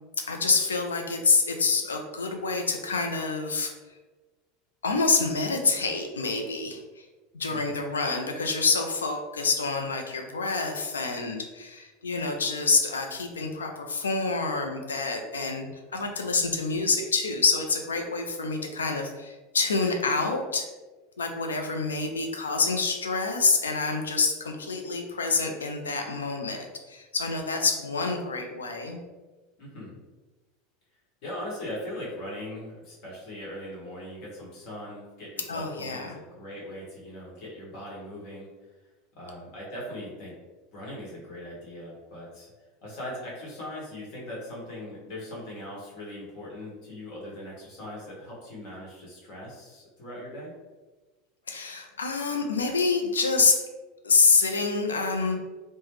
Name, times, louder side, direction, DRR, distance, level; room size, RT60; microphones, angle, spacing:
voice 1, 0.3-3.7 4.8-7.1 7.3-15.7 15.9-20.6 21.2-29.0 35.5-36.1 51.5-53.5 54.0-55.4, left 4 dB, 80° left, 4 dB, 0.4 m, -27 dB
voice 2, 7.5-7.8 29.6-30.0 31.2-38.5 39.2-40.3 40.7-42.5 42.8-50.5, left 1 dB, 55° left, -5 dB, 1.2 m, -40 dB
3.1 x 2.1 x 3.0 m, 1.2 s
figure-of-eight pair, 80°, 0 cm